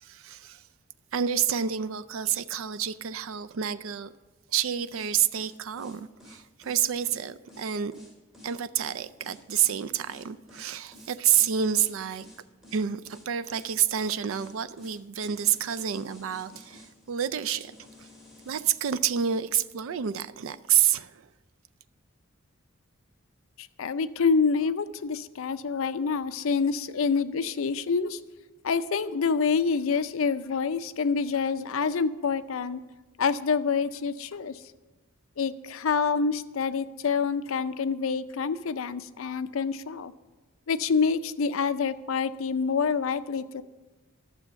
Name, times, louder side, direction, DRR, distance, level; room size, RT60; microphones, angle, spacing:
voice 1, 0.0-0.6 1.1-4.1 4.5-7.9 8.4-12.3 12.7-17.7 18.0-18.1 18.5-21.3, right 9 dB, 75° right, 0.4 m, -28 dB
sound 1, 4.9-18.8, left 1 dB, ahead, 2.3 m, -51 dB
voice 2, 23.6-28.2 28.6-32.8 33.2-34.6 35.4-40.1 40.7-43.6, left 5 dB, 75° left, 0.5 m, -27 dB
12.0 x 7.0 x 6.9 m
head